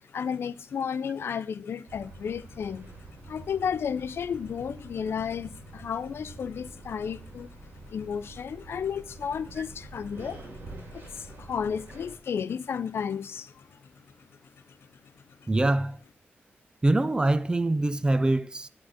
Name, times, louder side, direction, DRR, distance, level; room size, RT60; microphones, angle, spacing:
voice 1, 0.1-2.9 3.3-7.5 7.9-10.4 10.9-13.9 15.4-15.5, left 7 dB, 70° left, 0.5 m, -33 dB
sound 1, 1.9-12.2, right 2 dB, 55° right, 2.5 m, -46 dB
voice 2, 15.5-16.0 16.8-18.7, right 2 dB, 20° right, 0.5 m, -24 dB
10.0 x 3.9 x 6.3 m
cardioid pair, 90°, 4 cm